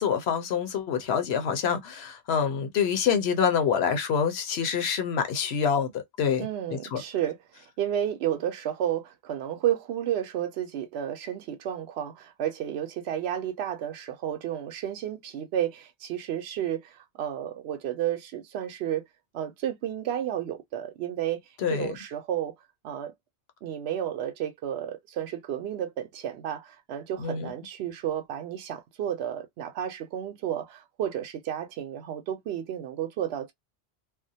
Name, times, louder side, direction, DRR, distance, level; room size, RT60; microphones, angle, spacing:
voice 1, 0.0-5.9 6.2-6.4 6.7-7.0 21.6-21.9 27.2-27.5, left 7 dB, 75° left, 0.9 m, -26 dB
voice 2, 6.4-19.0 19.3-21.4 21.7-22.5 22.8-23.1 23.6-33.5, right 10 dB, 75° right, 0.8 m, -32 dB
2.4 x 2.1 x 2.7 m
omnidirectional pair, 1.1 m